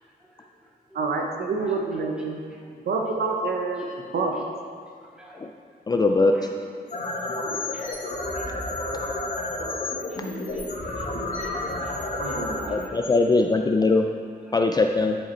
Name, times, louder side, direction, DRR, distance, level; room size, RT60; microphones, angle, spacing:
voice 1, 0.2-1.0 1.6-2.8 3.8-4.0 4.8-5.4 6.2-6.6 7.5-9.0 10.0-13.5 14.5-14.6, equal, 5° right, -5 dB, 1.8 m, -51 dB
voice 2, 0.9-2.4 2.9-4.3 12.2-12.8, right 3 dB, 70° right, 2 dB, 0.9 m, -27 dB
voice 3, 5.9-6.3 12.7-14.1 14.5-15.2, left 3 dB, 25° left, 3 dB, 0.3 m, -20 dB
sound 1, 6.7-13.8, left 2 dB, 55° left, 1.9 m, -31 dB
10.0 x 5.3 x 4.3 m, 2.1 s
wide cardioid pair, 115°, 17 cm